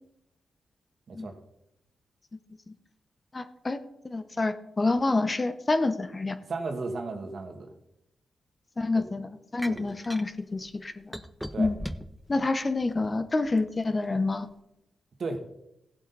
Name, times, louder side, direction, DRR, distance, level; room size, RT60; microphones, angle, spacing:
voice 1, 3.3-3.8 4.0-6.4 8.8-11.2 11.6-11.8 12.3-14.5, left 3 dB, 35° left, 10 dB, 0.9 m, -28 dB
voice 2, 6.5-7.7 8.9-9.1 9.6-9.9 11.5-11.7 15.2-15.4, right 3 dB, 60° right, 5 dB, 1.6 m, -34 dB
sound 1, 9.6-10.3 11.1-12.2 12.8-13.7, equal, ahead, 0.7 m, -37 dB
15.5 x 8.0 x 4.1 m, 0.85 s
cardioid pair, 60°, 0 cm